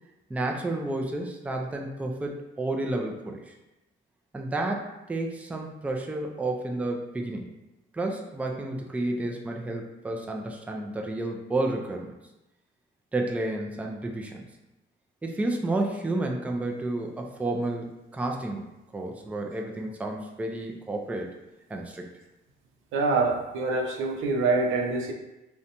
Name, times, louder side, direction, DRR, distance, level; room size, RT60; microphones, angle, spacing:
voice 1, 0.3-3.5 4.3-7.5 7.9-12.1 13.1-14.4 15.2-17.9 18.1-18.7 18.9-21.3 21.7-22.1, right 2 dB, 5° right, 1 dB, 0.3 m, -31 dB
voice 2, 22.9-25.1, right 3 dB, 85° right, 2 dB, 0.4 m, -25 dB
2.6 x 2.2 x 2.7 m, 0.96 s
cardioid pair, 90°, 20 cm